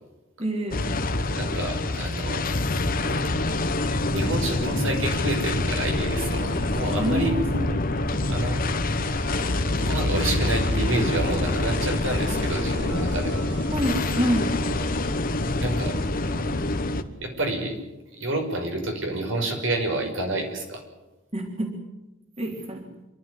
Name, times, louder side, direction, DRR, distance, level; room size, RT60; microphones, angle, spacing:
voice 1, 0.4-0.8 7.0-7.7 8.1-8.3 13.7-14.6 21.3-21.8 22.4-22.9, right 1 dB, 30° right, 1 dB, 3.3 m, -27 dB
sound 1, 0.7-17.0, left 2 dB, 45° left, 1.3 m, -26 dB
voice 2, 1.4-2.5 4.1-7.4 8.3-8.6 9.8-13.4 15.6-15.9 17.2-17.8 18.1-20.8, right 1 dB, 80° right, 3 dB, 5.9 m, -28 dB
sound 2, 9.0-14.5, right 2 dB, 60° right, 4.4 m, -43 dB
28.0 x 12.5 x 9.7 m, 1.0 s
head